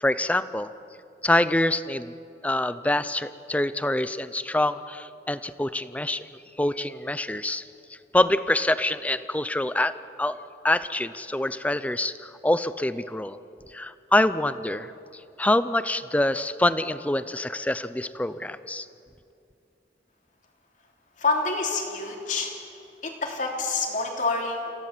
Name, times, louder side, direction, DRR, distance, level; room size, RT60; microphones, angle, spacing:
voice 1, 0.0-0.7 1.2-2.1 2.4-6.2 6.6-7.6 8.1-10.4 10.6-13.4 13.7-14.9 15.4-18.9, left 1 dB, 10° left, 14 dB, 0.5 m, -25 dB
voice 2, 21.2-22.5 23.0-24.7, left 3 dB, 45° left, 1 dB, 3.3 m, -27 dB
27.5 x 17.0 x 7.5 m, 2.7 s
head